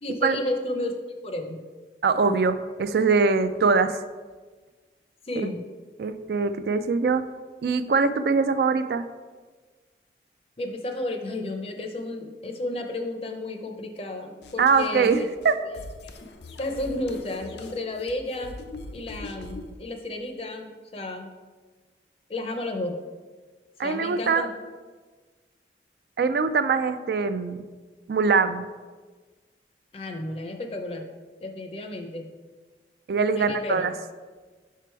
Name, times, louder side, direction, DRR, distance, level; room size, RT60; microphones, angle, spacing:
voice 1, 0.0-0.9 1.2-1.6 2.3-2.4 5.3-5.6 10.6-15.3 15.7-15.8 16.6-18.6 18.9-21.3 22.3-23.0 23.8-24.5 29.9-31.1 31.4-32.3 33.3-33.9, left 1 dB, 35° left, 4 dB, 0.6 m, -32 dB
voice 2, 2.0-4.0 5.4-5.5 6.0-7.2 7.6-9.0 14.6-15.2 15.4-15.6 23.8-24.5 26.2-27.6 28.1-28.6 33.1-33.9, right 4 dB, 65° right, 11 dB, 0.3 m, -22 dB
sound 1, 14.4-19.8, left 2 dB, 75° left, 0.6 m, -42 dB
5.9 x 4.7 x 4.5 m, 1.4 s
head